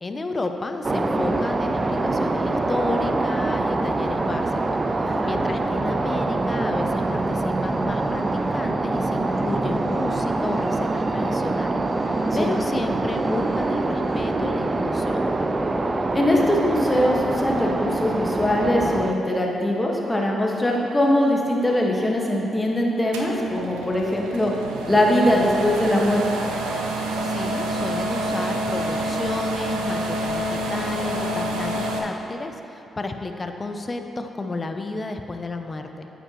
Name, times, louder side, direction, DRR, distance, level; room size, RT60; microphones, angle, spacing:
voice 1, 0.0-15.4 27.2-36.1, left 3 dB, 35° left, 6 dB, 0.7 m, -32 dB
sound 1, 0.8-19.1, right 2 dB, 35° right, 0.5 m, -24 dB
voice 2, 5.0-5.4 12.4-12.5 16.1-24.5 24.9-26.2, left 1 dB, 20° left, -2 dB, 1.6 m, -21 dB
sound 2, 23.1-32.0, right 1 dB, 85° right, 0.7 m, -27 dB
8.9 x 8.1 x 3.1 m, 3.0 s
hypercardioid pair, 45°, 0 cm